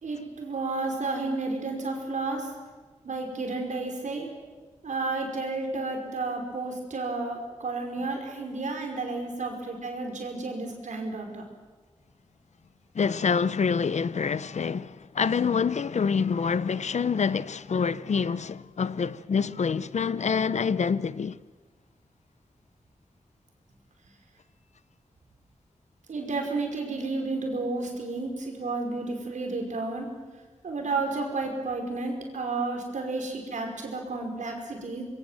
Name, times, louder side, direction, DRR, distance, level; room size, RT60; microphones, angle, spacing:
voice 1, 0.0-2.5 3.0-4.3 4.8-11.4 26.1-30.1 30.6-35.0, right 3 dB, 90° right, 5.3 m, -31 dB
voice 2, 12.9-21.4, left 6 dB, 70° left, 0.7 m, -26 dB
26.0 x 22.0 x 7.7 m
wide cardioid pair, 100°, 12 cm